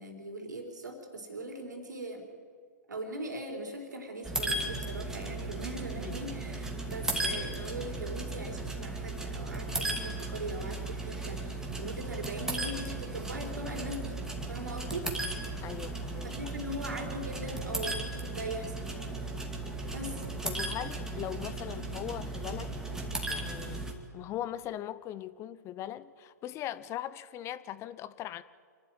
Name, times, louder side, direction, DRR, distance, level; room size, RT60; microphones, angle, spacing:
voice 1, 0.0-2.3 2.9-15.1 16.2-19.3 19.9-20.2, right 1 dB, 85° right, 4.2 m, -40 dB
sound 1, 4.2-23.9, right 2 dB, 5° right, 2.4 m, -36 dB
voice 2, 15.6-16.3 19.7-20.0 20.4-22.7 23.3-23.9 24.1-28.4, left 12 dB, 30° left, 0.7 m, -40 dB
26.5 x 11.5 x 9.3 m
hypercardioid pair, 115°, 10 cm